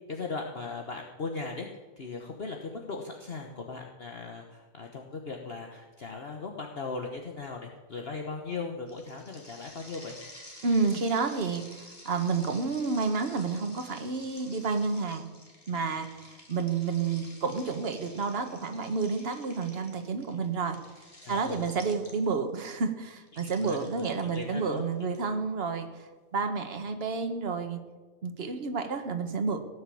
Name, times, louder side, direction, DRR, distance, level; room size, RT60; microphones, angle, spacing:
voice 1, 0.1-1.7 2.0-10.2 21.2-21.7 23.3-24.8, left 4 dB, 45° left, 2 dB, 1.4 m, -38 dB
sound 1, 8.9-22.5 23.3-25.2, left 1 dB, 25° left, 2.9 m, -51 dB
voice 2, 10.6-15.3 15.7-20.8 21.3-26.1 26.3-27.8 28.2-29.6, right 4 dB, 45° right, 7 dB, 1.5 m, -30 dB
17.5 x 6.8 x 8.5 m, 1.3 s
omnidirectional pair, 1.5 m